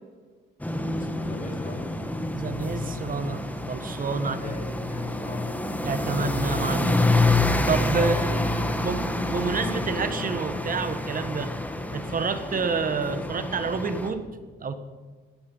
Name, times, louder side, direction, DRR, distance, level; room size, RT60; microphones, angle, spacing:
sound 1, 0.6-14.1, left 2 dB, 10° left, 1.7 m, -27 dB
voice 1, 1.0-1.9 4.2-5.6 8.0-8.3, left 3 dB, 40° left, 3 dB, 3.4 m, -40 dB
voice 2, 2.3-4.4 5.8-7.0 7.7-8.4 8.8-11.5 11.9-14.2 14.6-14.8, right 4 dB, 45° right, 10 dB, 1.4 m, -28 dB
17.0 x 12.5 x 5.5 m, 1.4 s
cardioid pair, 90°, 20 cm